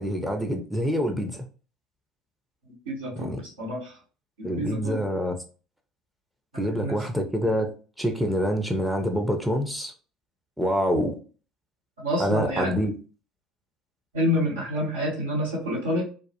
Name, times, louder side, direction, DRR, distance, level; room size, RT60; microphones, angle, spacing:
voice 1, 0.0-1.5 3.2-3.4 4.4-5.4 6.6-7.7 8.0-9.9 10.6-11.2 12.2-12.9, equal, ahead, 0.5 m, -26 dB
voice 2, 2.9-3.3 3.6-3.9 4.4-5.0 6.5-7.0 12.0-12.7 14.1-16.0, equal, 70° right, 0.9 m, -28 dB
2.2 x 2.0 x 2.7 m
figure-of-eight pair, 60°, 0 cm